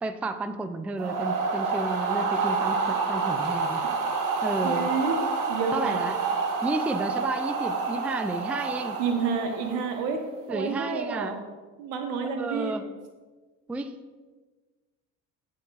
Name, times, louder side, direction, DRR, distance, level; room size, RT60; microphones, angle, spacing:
voice 1, 0.0-3.8 4.4-4.9 5.7-6.2 6.6-9.0 10.5-11.3 12.4-12.8 13.7-13.9, right 2 dB, 5° right, 9 dB, 0.3 m, -32 dB
sound 1, 1.0-10.1, right 4 dB, 55° right, 1.1 m, -28 dB
voice 2, 4.6-5.2 5.5-6.0 9.0-10.2 10.5-11.4 11.8-12.7, right 5 dB, 75° right, 5 dB, 1.1 m, -29 dB
14.0 x 4.8 x 2.4 m, 1.3 s
hypercardioid pair, 70°, 38 cm